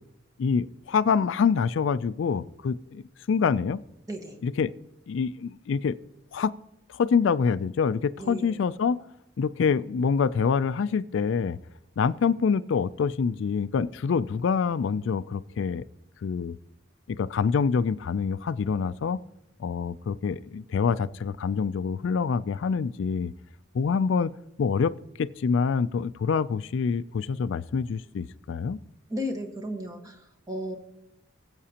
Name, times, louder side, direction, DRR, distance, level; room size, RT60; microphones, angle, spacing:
voice 1, 0.4-3.0 3.3-3.8 4.4-4.7 5.1-6.0 6.3-6.5 6.9-9.0 9.4-11.6 12.0-15.8 16.2-16.6 17.1-19.2 19.6-23.3 23.7-24.3 24.6-24.9 25.2-28.8, left 6 dB, 70° left, 0.3 m, -26 dB
voice 2, 8.2-8.6 29.1-30.8, equal, 15° right, 1.3 m, -34 dB
19.0 x 8.0 x 2.9 m
head